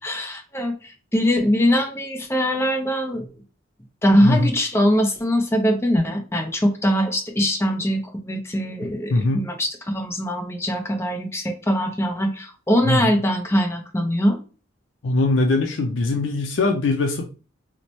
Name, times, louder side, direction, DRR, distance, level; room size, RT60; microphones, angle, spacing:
voice 1, 0.0-3.3 4.0-14.4, equal, 15° left, 4 dB, 0.5 m, -22 dB
voice 2, 9.1-9.4 12.8-13.1 15.0-17.2, left 2 dB, 80° left, 3 dB, 0.5 m, -21 dB
3.0 x 2.1 x 4.0 m, 0.36 s
head